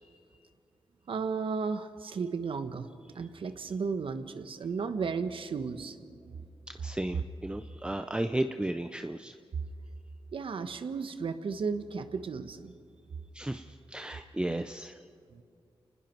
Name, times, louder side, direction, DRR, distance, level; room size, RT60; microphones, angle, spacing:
voice 1, 1.1-2.9 3.1-6.4 10.3-12.7 14.5-14.6 15.3-15.4, right 5 dB, 75° right, 9 dB, 1.3 m, -34 dB
voice 2, 6.8-9.3 13.3-15.0, right 1 dB, 10° right, 8 dB, 0.7 m, -34 dB
30.0 x 20.0 x 4.6 m, 2.5 s
wide cardioid pair, 85°, 9 cm